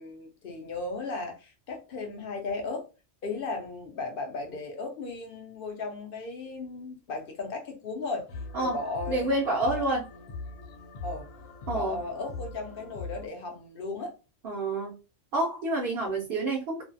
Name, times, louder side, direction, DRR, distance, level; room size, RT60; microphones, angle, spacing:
voice 1, 0.0-2.9 3.2-8.3 8.6-9.3 9.6-9.9 11.0-11.3 11.7-14.1 16.0-16.2, left 3 dB, 60° left, 0.6 m, -36 dB
sound 1, 8.3-13.3, left 3 dB, 90° left, 1.0 m, -41 dB
voice 2, 9.1-10.0 11.7-12.0 14.4-15.0 15.3-16.8, right 2 dB, 60° right, 0.7 m, -28 dB
2.5 x 2.3 x 2.5 m
omnidirectional pair, 1.3 m